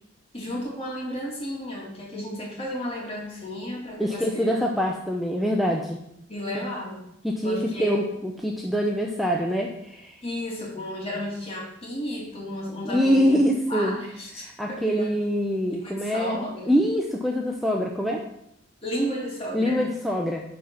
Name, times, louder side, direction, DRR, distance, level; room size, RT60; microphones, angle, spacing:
voice 1, 0.3-4.7 6.3-7.0 7.4-8.2 10.2-13.4 13.7-15.1 15.8-16.8 18.8-19.8, equal, 30° left, -3 dB, 2.5 m, -33 dB
voice 2, 4.0-6.0 6.5-6.6 7.2-10.2 12.8-14.0 14.4-18.2 19.5-20.4, equal, ahead, -1 dB, 0.6 m, -24 dB
9.8 x 4.2 x 5.8 m, 0.78 s
head